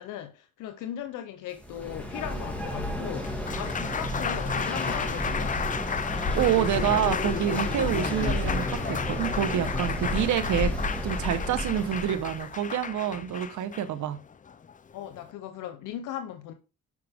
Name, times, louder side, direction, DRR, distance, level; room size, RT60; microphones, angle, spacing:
voice 1, 0.0-5.6 7.7-7.9 14.9-16.5, left 10 dB, 90° left, 0.8 m, -38 dB
sound 1, 1.6-12.4, left 1 dB, 5° left, 2.7 m, -32 dB
Applause, 3.2-15.3, left 6 dB, 25° left, 0.5 m, -33 dB
voice 2, 6.3-10.7 11.0-14.2, right 10 dB, 75° right, 1.1 m, -27 dB
11.0 x 5.0 x 3.5 m
cardioid pair, 90°, 30 cm